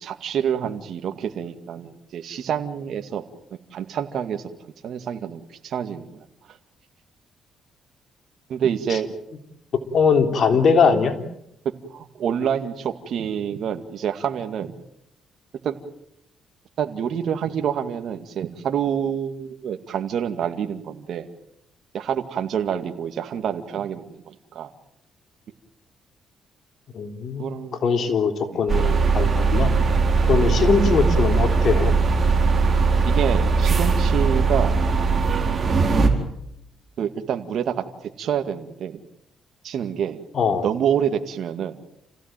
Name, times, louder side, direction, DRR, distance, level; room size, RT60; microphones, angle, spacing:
voice 1, 0.0-3.2 3.7-4.5 4.8-6.3 8.5-9.1 10.5-10.6 11.9-14.7 15.6-15.8 16.8-21.3 21.9-24.7 27.4-27.8 28.5-28.6 33.0-34.8 37.0-39.0 39.6-40.2 40.5-41.8, right 8 dB, 65° right, 7 dB, 2.1 m, -27 dB
voice 2, 9.9-11.2 26.9-27.6 27.8-29.8 30.3-31.9 40.3-40.7, left 5 dB, 55° left, 6 dB, 3.6 m, -21 dB
sound 1, 28.7-36.1, right 4 dB, 40° right, 4.5 m, -19 dB
28.5 x 16.5 x 9.1 m, 0.80 s
cardioid pair, 90°, 0 cm